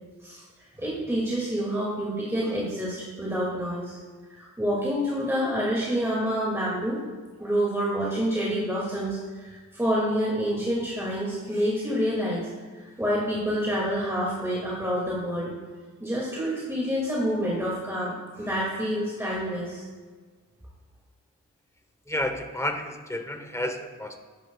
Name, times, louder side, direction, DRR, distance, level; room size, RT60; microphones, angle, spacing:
voice 1, 0.7-4.0 4.3-7.0 7.4-12.4 12.7-15.5 16.0-19.8, equal, 10° right, -6 dB, 2.2 m, -28 dB
voice 2, 22.1-24.2, left 1 dB, 10° left, 6 dB, 0.9 m, -31 dB
10.5 x 10.0 x 2.3 m, 1.4 s
wide cardioid pair, 90°, 31 cm